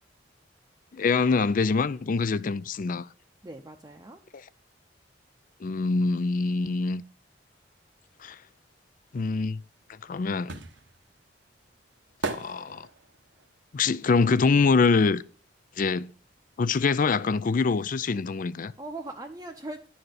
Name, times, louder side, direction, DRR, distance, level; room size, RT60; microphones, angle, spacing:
voice 1, 0.9-3.1 5.6-7.0 8.2-8.4 9.1-9.6 10.0-10.6 12.3-12.9 13.7-15.2 15.8-16.1 16.6-18.7, left 4 dB, 45° left, 0.4 m, -24 dB
voice 2, 3.4-4.2 18.8-20.0, right 2 dB, 20° right, 0.7 m, -40 dB
sound 1, 9.6-15.5 15.7-17.3 17.6-17.7, right 3 dB, 80° right, 1.0 m, -39 dB
11.0 x 4.3 x 7.9 m
head